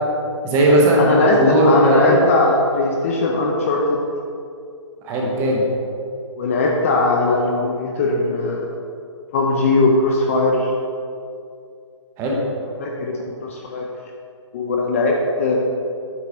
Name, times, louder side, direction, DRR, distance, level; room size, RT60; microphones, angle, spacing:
voice 1, 0.4-2.2 5.0-5.6 12.2-12.4, right 1 dB, 15° right, -3 dB, 1.0 m, -17 dB
voice 2, 1.0-1.4 1.6-4.0 6.4-8.7 9.3-10.7 12.8-13.1 13.4-13.8 14.5-15.6, left 3 dB, 25° left, 0 dB, 0.6 m, -19 dB
8.2 x 4.5 x 5.2 m, 2.5 s
hypercardioid pair, 165°, 16 cm